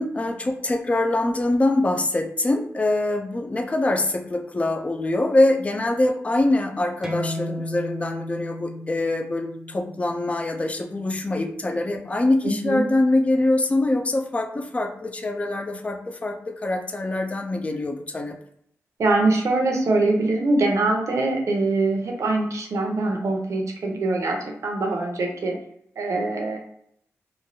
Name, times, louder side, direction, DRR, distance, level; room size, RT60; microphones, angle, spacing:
voice 1, 0.0-18.4, left 2 dB, 25° left, 4 dB, 0.4 m, -24 dB
sound 1, 7.0-12.2, left 1 dB, 5° right, 0.7 m, -35 dB
voice 2, 12.4-12.8 19.0-25.6 26.0-26.6, right 2 dB, 70° right, 1 dB, 0.7 m, -23 dB
3.1 x 2.3 x 2.7 m, 0.70 s
wide cardioid pair, 90°, 5 cm